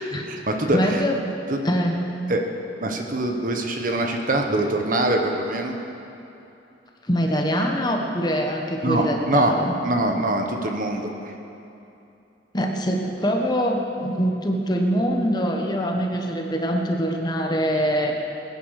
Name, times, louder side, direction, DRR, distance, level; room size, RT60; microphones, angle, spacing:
voice 1, 0.1-1.0 1.5-1.6 2.3-2.4 2.8-5.7 8.8-9.6 9.8-11.3, right 1 dB, 45° right, 3 dB, 1.4 m, -23 dB
voice 2, 0.7-1.1 1.6-2.2 7.1-9.7 12.5-18.2, equal, 20° left, 2 dB, 1.3 m, -23 dB
22.0 x 9.8 x 6.6 m, 2.8 s
head